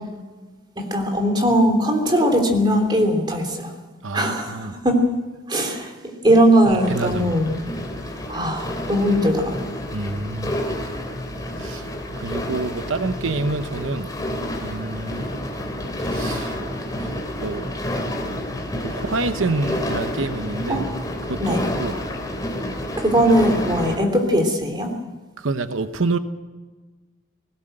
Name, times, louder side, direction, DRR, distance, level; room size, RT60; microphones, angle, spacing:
voice 1, 0.8-3.7 4.1-5.0 5.5-5.9 6.2-7.5 8.3-9.5 20.7-20.8 21.4-21.6 23.0-24.9, equal, 20° right, 3.2 m, -19 dB
voice 2, 4.0-4.8 6.3-6.4 6.7-7.3 9.9-10.6 11.6-11.9 12.2-14.1 14.6-15.3 16.0-16.6 16.9-17.7 18.8-20.8 21.3-21.9 25.4-26.2, right 3 dB, 90° right, 0.9 m, -27 dB
sound 1, 6.8-24.0, left 1 dB, 20° left, 3.2 m, -29 dB
20.0 x 17.5 x 7.8 m
head